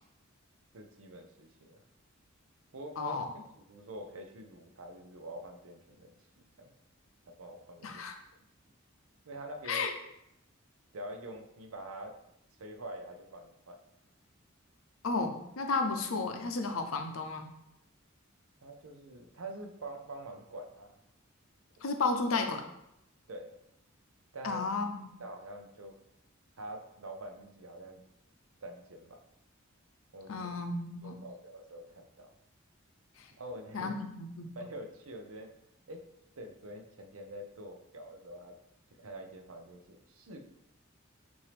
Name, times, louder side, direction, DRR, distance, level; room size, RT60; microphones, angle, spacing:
voice 1, 0.7-1.8 2.7-3.2 3.5-6.1 6.6-6.7 7.3-8.0 9.3-9.9 10.9-12.2 12.6-13.8 18.6-21.0 23.3-23.6 24.3-24.6 25.2-25.9 26.6-28.0 28.6-29.2 30.1-30.5 31.0-32.3 33.4-33.9 34.6-35.5 35.9-36.0 36.4-38.5 39.0-40.4, right 1 dB, 85° right, 4 dB, 0.7 m, -45 dB
voice 2, 3.0-3.3 7.8-8.1 9.7-9.9 15.0-17.5 21.8-22.7 24.4-25.1 30.3-31.2 33.2-33.3 33.7-34.5, left 3 dB, 90° left, 6 dB, 0.6 m, -33 dB
5.8 x 2.7 x 3.3 m, 0.81 s
head